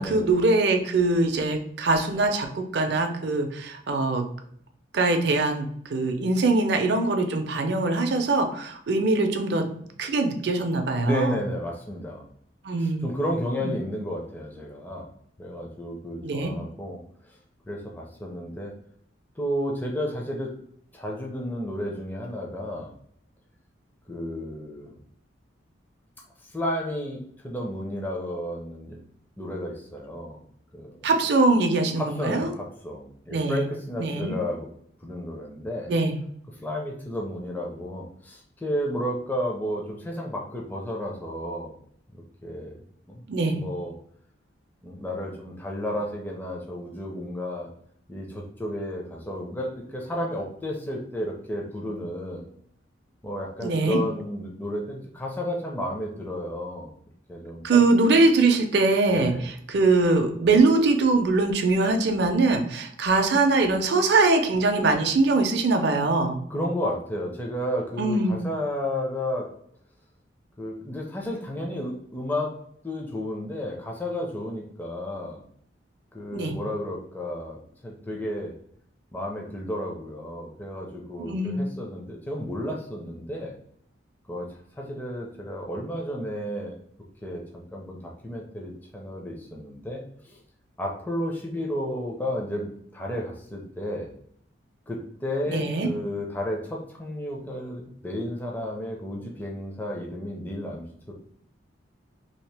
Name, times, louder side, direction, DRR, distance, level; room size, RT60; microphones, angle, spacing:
voice 1, 0.0-4.2 4.9-9.6 10.0-11.4 12.6-13.1 13.6-13.7 16.2-16.5 31.0-32.5 33.3-33.6 34.0-34.4 35.9-36.2 43.3-43.6 53.6-54.0 57.6-66.4 68.0-68.4 76.3-76.5 81.2-81.7 95.5-95.9, right 3 dB, 55° right, 5 dB, 0.4 m, -22 dB
voice 2, 11.0-12.2 12.8-15.1 15.4-17.0 17.7-18.7 19.4-20.5 20.9-23.0 24.1-24.9 26.4-29.0 29.4-30.4 30.7-31.0 32.0-34.7 35.0-35.9 36.5-41.7 42.4-42.7 43.1-43.2 43.5-43.9 44.8-47.7 48.1-52.5 53.2-56.9 57.3-57.9 59.1-59.5 66.5-69.5 70.6-72.6 72.8-75.4 76.1-78.5 79.1-83.5 84.3-84.5 84.8-86.8 87.2-90.4 90.8-94.1 94.9-101.1, equal, 10° left, -1 dB, 0.4 m, -32 dB
2.8 x 2.8 x 3.3 m, 0.65 s
head